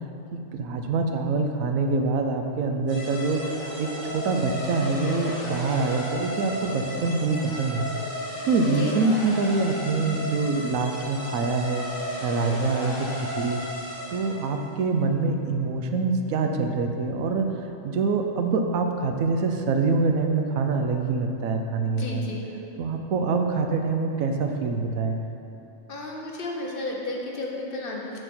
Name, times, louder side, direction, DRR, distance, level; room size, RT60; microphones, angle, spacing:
voice 1, 0.5-3.4 3.8-7.9 8.4-11.9 12.2-13.6 14.1-22.3 22.8-25.2, right 3 dB, 90° right, 4 dB, 1.1 m, -25 dB
sound 1, 2.9-14.5, equal, 75° left, 2.4 m, -34 dB
Frog, 3.0-8.1, right 1 dB, 70° right, 1.7 m, -42 dB
voice 2, 22.0-22.5 25.9-28.2, left 2 dB, 45° left, -2 dB, 1.0 m, -33 dB
6.8 x 6.3 x 4.3 m, 2.9 s
omnidirectional pair, 1.4 m